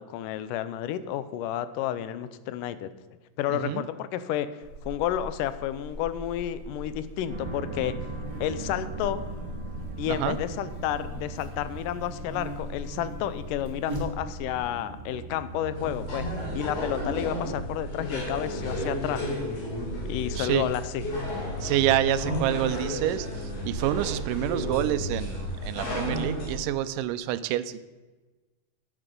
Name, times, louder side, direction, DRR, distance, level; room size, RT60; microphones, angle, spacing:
voice 1, 0.0-2.9 3.4-8.0 8.4-9.3 10.0-16.3 16.5-19.3 20.1-21.0, left 11 dB, 90° left, 14 dB, 2.2 m, -31 dB
voice 2, 3.5-3.8 10.1-10.4 20.4-20.7 21.6-23.3 23.6-27.8, right 13 dB, 85° right, 14 dB, 2.2 m, -27 dB
Buzz, 4.6-14.6, left 1 dB, 25° right, 2.6 m, -40 dB
sound 1, 7.3-17.3, right 3 dB, 50° right, 2.0 m, -40 dB
sound 2, 15.7-26.5, equal, 65° left, 4.1 m, -32 dB
9.9 x 9.0 x 5.2 m, 1.2 s
omnidirectional pair, 3.7 m